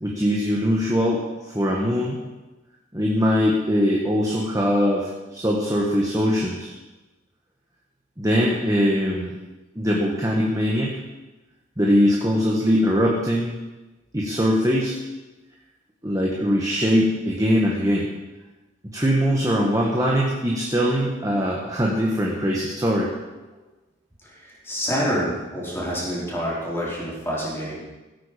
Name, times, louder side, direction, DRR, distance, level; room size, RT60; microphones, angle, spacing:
voice 1, 0.0-1.2 1.5-2.2 2.9-6.7 8.2-9.3 9.7-10.9 11.8-13.5 14.1-15.0 16.0-18.1 18.9-23.1, equal, 20° right, -3 dB, 1.5 m, -21 dB
voice 2, 24.2-27.8, equal, 10° left, -6 dB, 4.4 m, -27 dB
16.5 x 8.8 x 5.2 m, 1.1 s
head